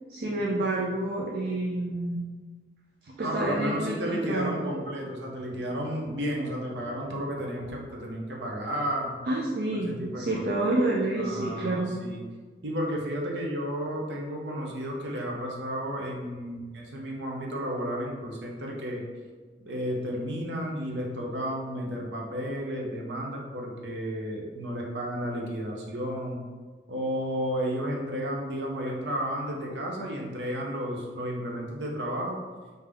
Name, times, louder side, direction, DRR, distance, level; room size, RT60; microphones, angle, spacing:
voice 1, 0.1-2.2 3.2-4.5 9.3-11.9, right 2 dB, 60° right, -4 dB, 0.4 m, -28 dB
voice 2, 3.2-9.2 9.7-10.4 11.2-12.2 12.6-19.0 19.7-26.4 26.9-32.4, equal, 85° right, -1 dB, 0.7 m, -32 dB
3.4 x 2.7 x 3.4 m, 1.4 s
head